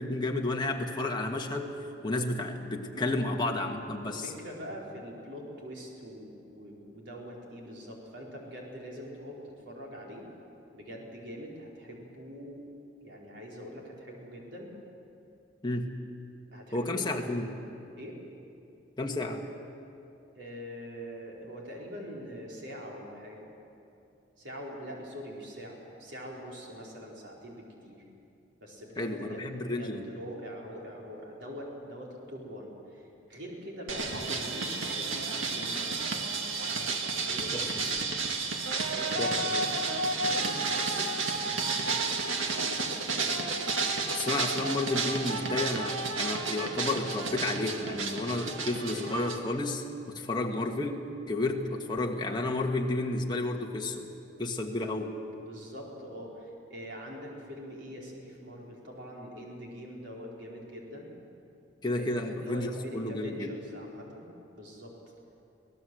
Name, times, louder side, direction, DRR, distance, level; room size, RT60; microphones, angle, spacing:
voice 1, 0.0-1.8 2.0-4.2 15.6-15.9 16.7-17.4 19.0-19.4 29.0-30.1 37.5-37.8 39.2-39.7 44.1-51.0 51.3-54.1 54.4-55.2 61.8-62.7 62.9-63.5, left 2 dB, 25° left, 1 dB, 1.6 m, -31 dB
voice 2, 4.0-10.3 10.7-12.6 13.0-14.7 16.5-17.7 18.0-18.2 20.3-23.5 24.4-28.0 28.6-36.1 36.5-38.0 38.7-42.3 43.1-43.5 55.4-61.1 62.0-64.3 64.5-64.9, equal, 60° right, -2 dB, 4.6 m, -43 dB
sound 1, 33.9-49.4, right 3 dB, 85° right, 1.9 m, -31 dB
25.0 x 18.0 x 7.9 m, 2.7 s
head